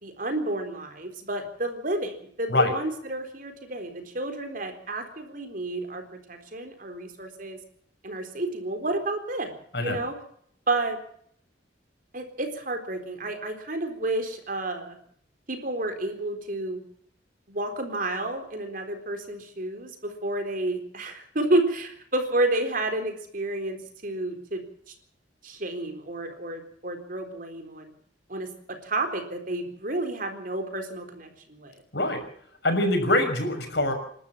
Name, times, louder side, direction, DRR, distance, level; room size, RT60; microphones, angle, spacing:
voice 1, 0.0-7.6 8.0-9.5 9.8-10.2 10.7-11.0 12.1-15.0 15.5-16.8 17.5-24.9 25.4-27.9 28.3-31.8, right 2 dB, 50° right, 6 dB, 4.0 m, -30 dB
voice 2, 32.6-33.9, left 1 dB, 65° left, 5 dB, 6.1 m, -23 dB
29.0 x 12.5 x 7.3 m, 0.64 s
head